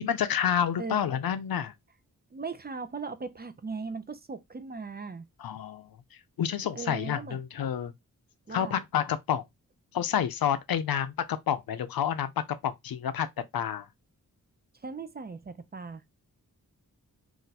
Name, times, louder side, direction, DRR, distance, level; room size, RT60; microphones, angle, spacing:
voice 1, 0.0-1.7 5.4-5.9 6.4-7.9 8.5-9.4 9.9-12.3 12.6-13.3 13.5-13.9, left 9 dB, 75° left, 0.5 m, -29 dB
voice 2, 0.8-1.1 2.3-5.2 6.7-7.4 8.5-8.8 14.8-16.0, right 4 dB, 25° right, 0.5 m, -38 dB
2.5 x 2.2 x 3.9 m
cardioid pair, 45°, 36 cm